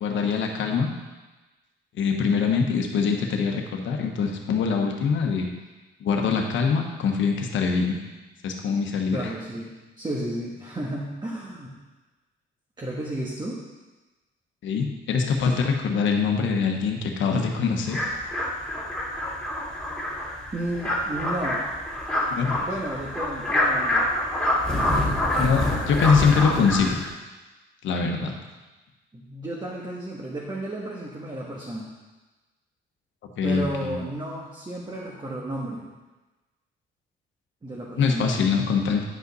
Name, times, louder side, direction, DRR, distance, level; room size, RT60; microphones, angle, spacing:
voice 1, 0.0-0.9 2.0-5.5 6.0-8.0 8.4-9.3 14.6-18.0 22.3-22.6 25.4-27.0 27.8-28.3 33.4-34.0 38.0-39.0, left 5 dB, 75° left, 2 dB, 1.2 m, -23 dB
voice 2, 9.1-11.7 12.8-13.6 20.5-21.6 22.6-24.0 29.1-31.9 33.4-35.9 37.6-38.5, right 1 dB, 20° right, -4 dB, 1.3 m, -33 dB
sound 1, 17.9-27.1, left 1 dB, 5° left, 2.5 m, -26 dB
9.6 x 5.3 x 4.1 m, 1.2 s
cardioid pair, 90°, 20 cm